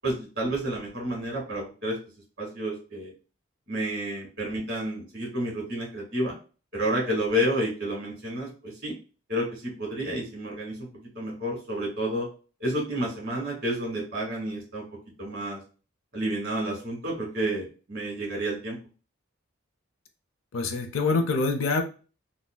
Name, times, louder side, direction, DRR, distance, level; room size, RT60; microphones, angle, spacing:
voice 1, 0.0-2.0 2.4-3.1 3.7-6.3 6.7-8.9 9.3-12.3 12.6-14.8 15.2-15.6 16.1-18.8, right 1 dB, 50° right, -2 dB, 1.5 m, -30 dB
voice 2, 20.5-21.8, left 3 dB, 80° left, 6 dB, 0.5 m, -25 dB
3.6 x 2.2 x 2.2 m, 0.36 s
head